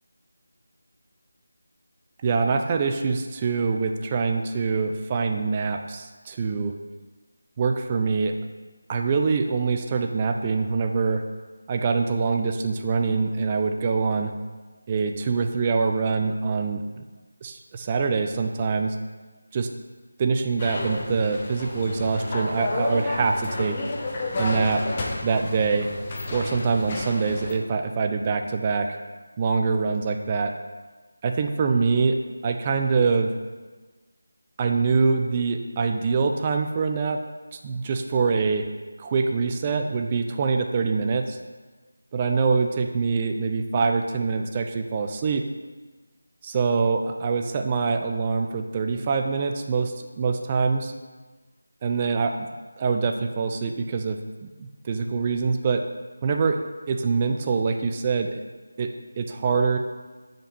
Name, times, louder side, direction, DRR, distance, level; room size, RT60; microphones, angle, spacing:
voice 1, 2.2-6.7 7.6-8.3 8.9-11.2 11.7-14.3 14.9-16.8 17.4-19.0 19.5-19.7 20.2-23.8 24.4-24.8 25.2-25.9 26.3-29.0 29.4-30.5 31.2-32.2 32.4-33.3 34.6-37.2 37.6-38.7 39.0-41.4 42.1-45.4 46.4-50.9 51.8-52.3 52.8-55.8 56.2-56.6 56.9-58.4 58.8-58.9 59.2-59.8, right 4 dB, 20° right, 4 dB, 0.3 m, -24 dB
sound 1, 20.6-27.5, left 2 dB, 25° left, 0.6 m, -31 dB
6.6 x 5.0 x 3.0 m, 1.3 s
figure-of-eight pair, 165°, 0 cm